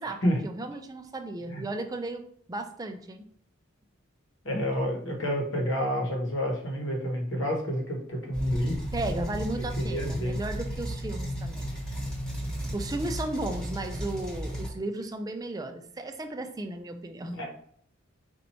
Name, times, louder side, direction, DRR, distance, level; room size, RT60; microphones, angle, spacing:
voice 1, 0.0-2.2 2.5-3.2 8.9-11.7 12.7-17.4, right 2 dB, 20° right, 6 dB, 0.4 m, -35 dB
voice 2, 4.4-8.8 9.8-10.4 17.2-17.5, equal, 65° left, 1 dB, 1.2 m, -29 dB
sound 1, 8.3-14.7, equal, 5° left, 1.1 m, -34 dB
4.3 x 2.6 x 4.3 m, 0.65 s
head